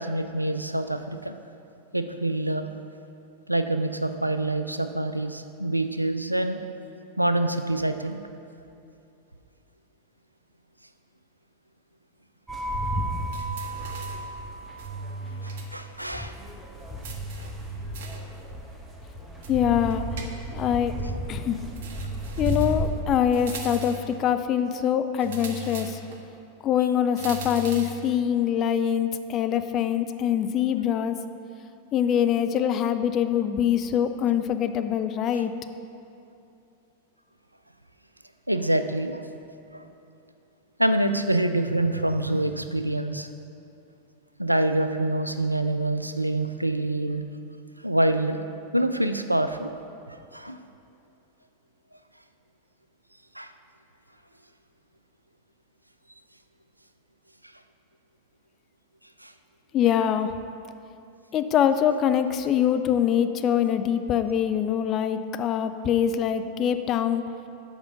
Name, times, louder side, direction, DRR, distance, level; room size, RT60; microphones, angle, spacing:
voice 1, 0.0-1.4 1.9-2.7 3.5-6.6 7.2-8.2 15.4-16.3 38.5-39.3 39.7-39.9 40.8-43.3 44.4-47.2 47.8-48.4 48.7-49.7 50.1-50.6 53.4-53.5 59.2-59.3, right 1 dB, 85° right, 9 dB, 0.3 m, -26 dB
sound 1, 12.5-23.0, equal, 10° right, 1.0 m, -34 dB
sound 2, 13.3-14.3 14.8-15.7 16.0-16.1 17.0-18.3 19.4-20.7 21.7-22.9 23.3-24.1 25.2-26.2 27.2-28.0, right 3 dB, 55° right, 0.8 m, -37 dB
voice 2, 19.5-20.0 20.5-20.9 21.3-21.6 22.4-26.0 26.6-31.2 31.9-35.5 59.7-60.3 61.3-67.2, left 9 dB, 30° left, 9 dB, 0.4 m, -24 dB
7.0 x 5.0 x 5.6 m, 2.7 s
figure-of-eight pair, 90°, 0 cm